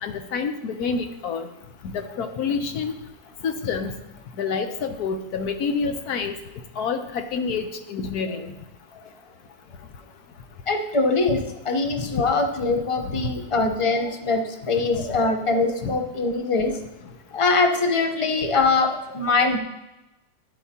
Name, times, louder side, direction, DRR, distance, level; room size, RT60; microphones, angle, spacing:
voice 1, 0.0-1.5 2.2-2.9 3.4-3.9 4.4-6.3 6.8-8.5 13.0-13.2 15.8-15.9, left 5 dB, 65° left, 7 dB, 1.2 m, -27 dB
voice 2, 10.7-16.8 17.3-19.6, left 3 dB, 45° left, 4 dB, 0.4 m, -23 dB
12.0 x 10.0 x 2.9 m, 0.97 s
omnidirectional pair, 1.9 m